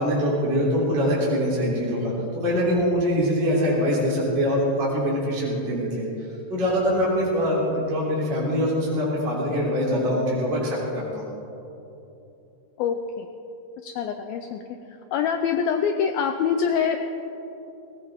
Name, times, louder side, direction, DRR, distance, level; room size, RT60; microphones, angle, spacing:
voice 1, 0.0-6.1 6.5-11.3, equal, 25° right, -6 dB, 3.6 m, -23 dB
voice 2, 12.8-13.3 13.8-14.6 15.1-17.0, left 7 dB, 90° left, 6 dB, 2.1 m, -25 dB
19.5 x 18.0 x 3.6 m, 2.9 s
omnidirectional pair, 5.0 m